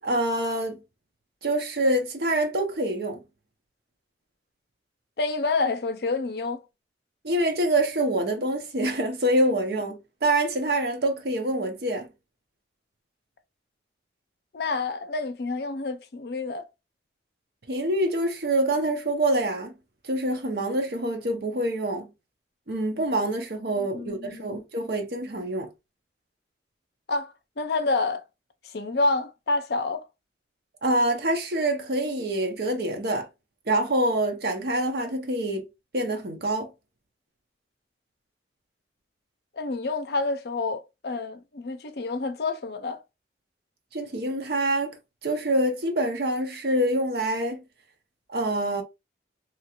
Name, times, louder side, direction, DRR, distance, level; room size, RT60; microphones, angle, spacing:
voice 1, 0.0-0.8 1.4-3.2 7.2-12.1 17.7-19.7 20.0-22.1 22.7-25.7 30.8-33.3 33.7-35.6 35.9-36.7 43.9-45.0 45.2-47.6 48.3-48.8, right 1 dB, 55° right, 0.7 m, -26 dB
voice 2, 5.2-6.6 14.5-16.6 23.8-24.6 27.1-28.2 28.7-30.0 39.5-43.0, left 3 dB, 60° left, 0.5 m, -28 dB
2.9 x 2.4 x 2.8 m
head